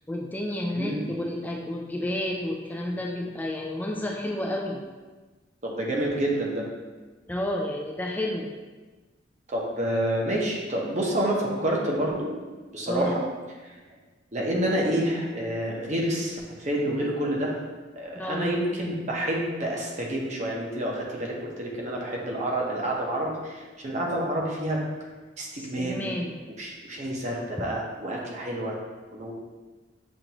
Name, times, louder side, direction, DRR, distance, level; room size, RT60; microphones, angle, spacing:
voice 1, 0.1-4.8 7.3-8.5 12.9-13.2 18.2-18.6 25.6-26.3, left 1 dB, 10° left, 0 dB, 0.3 m, -31 dB
voice 2, 0.7-1.2 5.6-6.7 9.5-12.3 12.7-13.2 14.3-17.5 18.0-24.8 25.4-26.1 26.6-28.8 29.1-29.3, right 1 dB, 40° right, -2 dB, 0.8 m, -28 dB
7.2 x 2.5 x 2.9 m, 1.3 s
head